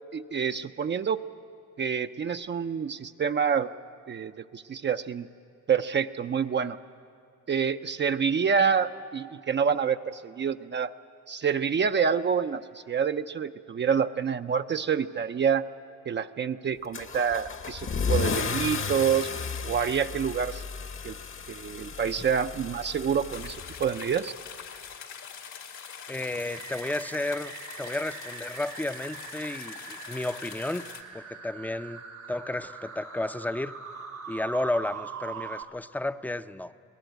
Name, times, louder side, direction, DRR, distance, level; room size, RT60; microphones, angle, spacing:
voice 1, 0.1-1.2 1.8-3.7 4.1-5.3 5.7-6.8 7.5-10.9 11.3-15.6 16.1-19.3 19.6-20.6 21.0-21.1 21.5-24.3, right 7 dB, 35° right, 8 dB, 0.5 m, -27 dB
Car / Engine starting / Accelerating revving vroom, 16.9-24.3, left 5 dB, 45° left, 1.1 m, -33 dB
sound 1, 23.3-31.0, left 7 dB, 75° left, 2.0 m, -43 dB
voice 2, 26.1-27.5 27.8-30.9 31.1-32.0 32.3-33.7 34.3-36.7, left 1 dB, 5° left, 12 dB, 0.5 m, -32 dB
sound 2, 26.5-35.6, right 7 dB, 80° right, 2.6 m, -42 dB
25.0 x 18.0 x 8.0 m, 2.4 s
cardioid pair, 90°, 30 cm